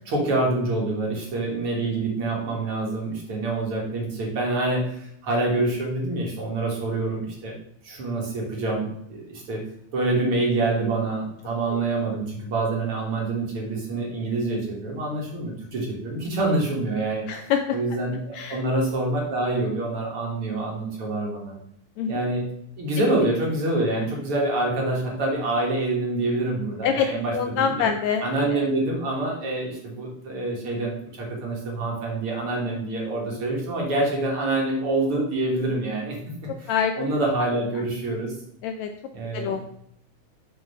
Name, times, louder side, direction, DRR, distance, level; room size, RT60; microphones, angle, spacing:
voice 1, 0.0-7.6 7.8-9.6 9.9-17.3 17.7-21.5 22.1-22.5 22.8-27.9 28.2-36.7 37.0-38.3 39.1-39.6, right 2 dB, 50° right, -1 dB, 2.1 m, -26 dB
voice 2, 17.3-17.8 18.3-18.6 22.0-22.3 26.8-27.1 27.3-28.2 28.5-28.6 36.7-37.1 38.6-38.9 39.3-39.6, left 7 dB, 80° left, 6 dB, 1.6 m, -25 dB
6.6 x 4.5 x 5.3 m, 0.72 s
omnidirectional pair, 3.6 m